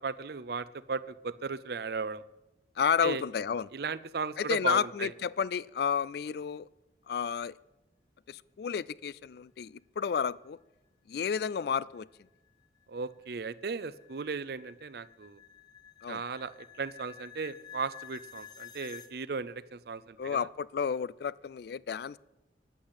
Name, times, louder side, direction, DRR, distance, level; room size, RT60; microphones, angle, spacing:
voice 1, 0.0-2.2 3.0-3.2 3.7-5.1 12.9-15.4 16.1-20.4, right 5 dB, 55° right, 16 dB, 0.5 m, -36 dB
voice 2, 2.8-3.7 4.4-6.7 7.1-7.5 8.3-10.6 11.1-12.1 16.0-16.2 20.2-22.2, left 7 dB, 55° left, 21 dB, 0.3 m, -31 dB
sound 1, 12.0-19.1, left 9 dB, 20° left, 0.7 m, -51 dB
9.9 x 8.7 x 8.3 m, 1.0 s
head